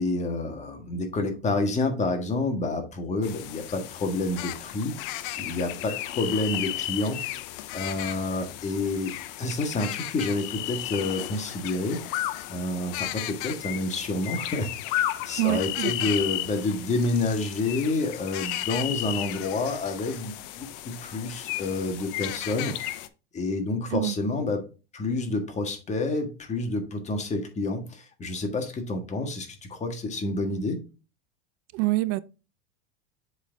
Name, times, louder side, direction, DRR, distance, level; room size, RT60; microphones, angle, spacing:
voice 1, 0.0-4.9 5.4-7.2 7.7-9.1 9.4-12.0 12.5-22.8 23.3-24.6 24.9-30.8, left 2 dB, 20° left, 1.6 m, -29 dB
sound 1, 3.2-23.1, left 14 dB, 60° left, 0.7 m, -34 dB
voice 2, 15.4-16.1 23.9-24.1 31.7-32.2, right 20 dB, 50° right, 0.4 m, -26 dB
7.3 x 4.1 x 3.4 m
supercardioid pair, 125°, 31 cm